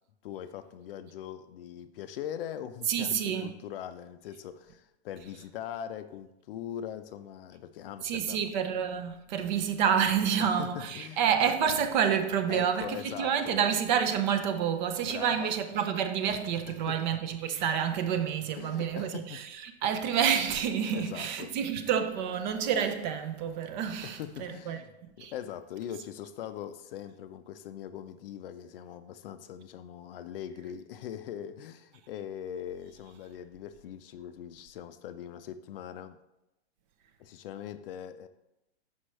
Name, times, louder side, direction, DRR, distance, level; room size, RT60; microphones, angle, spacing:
voice 1, 0.2-8.5 10.4-11.2 12.5-13.6 15.0-15.5 16.7-17.0 18.6-19.4 19.8-20.0 20.9-21.6 24.0-36.2 37.2-38.3, left 9 dB, 55° left, 0.5 m, -41 dB
voice 2, 2.9-3.5 8.0-24.8 25.2-25.3, right 8 dB, 40° right, 0.6 m, -28 dB
6.2 x 5.5 x 3.1 m
hypercardioid pair, 140°, 35 cm